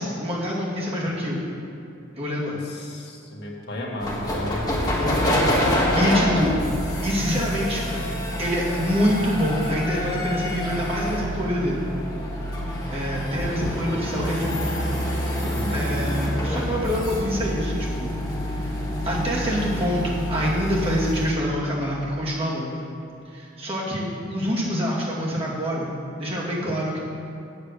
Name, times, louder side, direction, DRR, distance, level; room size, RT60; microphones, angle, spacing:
voice 1, 0.0-1.4 2.1-2.6 4.9-5.2 5.5-6.6 7.0-8.1 8.4-11.8 12.9-14.7 15.7-18.2 18.4-18.7 19.0-22.8 23.3-25.9 26.2-27.0, equal, 30° right, -6 dB, 2.3 m, -26 dB
voice 2, 2.9-4.7 15.4-15.8, left 1 dB, 55° left, -2 dB, 1.6 m, -33 dB
sound 1, 4.0-21.4, equal, 20° left, 1.4 m, -27 dB
8.5 x 7.9 x 6.6 m, 2.7 s
head